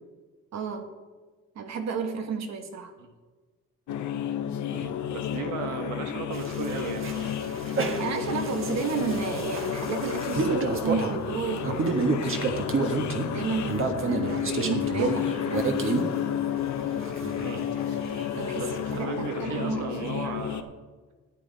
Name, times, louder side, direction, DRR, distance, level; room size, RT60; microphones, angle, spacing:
voice 1, 0.5-0.9 1.5-2.9 5.4-5.5 8.0-12.8 13.2-16.2 18.4-20.4, right 5 dB, 60° right, 7 dB, 1.4 m, -33 dB
sound 1, 3.9-20.6, left 9 dB, 70° left, 0.8 m, -31 dB
voice 2, 4.7-7.3 14.2-14.4 17.4-17.7 18.6-20.7, right 5 dB, 85° right, 6 dB, 1.3 m, -35 dB
sound 2, 6.3-19.0, right 3 dB, 45° right, 1.4 m, -30 dB
13.0 x 9.4 x 4.1 m, 1.3 s
cardioid pair, 90°, 30 cm